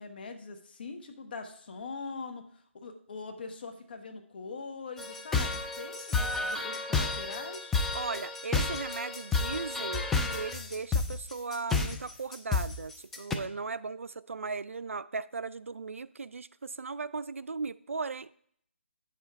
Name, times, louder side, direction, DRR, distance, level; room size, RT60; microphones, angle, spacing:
voice 1, 0.0-2.5 2.7-7.8, left 4 dB, 45° left, 1.1 m, -42 dB
sound 1, 5.0-13.3, left 4 dB, 5° left, 0.3 m, -31 dB
voice 2, 7.9-18.4, right 4 dB, 80° right, 0.4 m, -37 dB
8.9 x 6.7 x 3.4 m
figure-of-eight pair, 160°, 7 cm